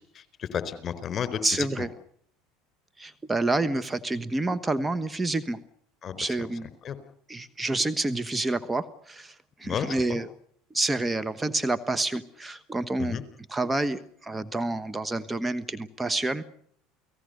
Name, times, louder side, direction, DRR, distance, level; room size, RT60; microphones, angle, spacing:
voice 1, 0.4-1.7 6.0-6.2 6.8-7.0 9.6-10.2 13.0-13.2, left 8 dB, 40° left, 13 dB, 4.4 m, -32 dB
voice 2, 1.4-1.9 3.0-5.6 6.2-6.7 7.3-10.3 10.7-13.2 13.5-16.4, right 2 dB, 15° right, 12 dB, 1.3 m, -28 dB
30.0 x 18.5 x 6.7 m, 0.65 s
hypercardioid pair, 80°, 0 cm